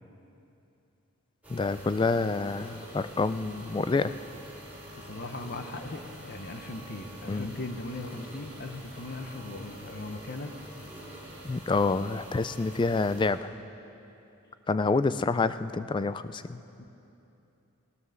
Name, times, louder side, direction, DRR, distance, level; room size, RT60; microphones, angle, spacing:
sound 1, 1.4-13.3, right 1 dB, 5° right, 3.3 m, -46 dB
voice 1, 1.5-4.1 7.3-7.5 11.4-13.5 14.7-16.6, left 3 dB, 20° left, 13 dB, 0.3 m, -27 dB
voice 2, 4.9-10.5 16.8-16.9, left 2 dB, 50° left, 6 dB, 0.9 m, -39 dB
17.5 x 11.0 x 6.6 m, 2.8 s
head